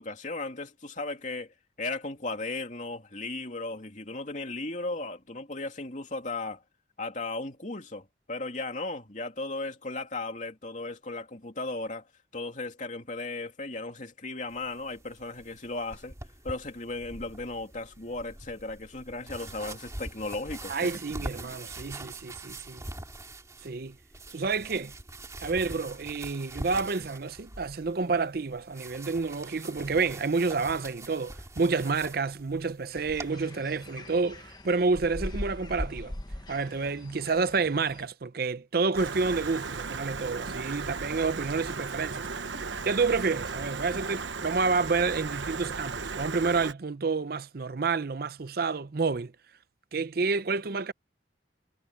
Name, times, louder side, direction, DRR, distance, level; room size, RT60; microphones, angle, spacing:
voice 1, 0.0-1.5 1.8-6.6 7.0-12.1 12.3-16.1 16.4-20.9 40.7-40.8 42.5-42.6, left 2 dB, 45° left, 2.8 m, -36 dB
sound 1, 14.5-33.3, right 2 dB, 15° right, 2.4 m, -44 dB
voice 2, 20.7-22.8 23.6-24.0 24.3-24.9 25.4-36.1 36.5-42.3 42.8-49.3 49.9-50.9, right 4 dB, 55° right, 0.6 m, -29 dB
sound 2, 32.9-38.1, left 1 dB, 25° left, 1.1 m, -40 dB
Stream, 38.9-46.7, right 4 dB, 85° right, 1.1 m, -36 dB
head